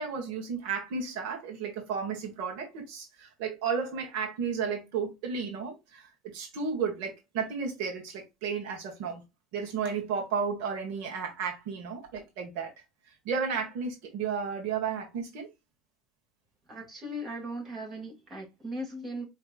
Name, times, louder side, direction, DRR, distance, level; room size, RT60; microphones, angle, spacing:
voice 1, 0.0-9.2 9.5-12.7 13.1-15.5, right 6 dB, 75° right, 1.6 m, -33 dB
voice 2, 16.7-19.3, equal, 25° right, 2.3 m, -38 dB
4.9 x 3.3 x 2.5 m
cardioid pair, 150°, 0 cm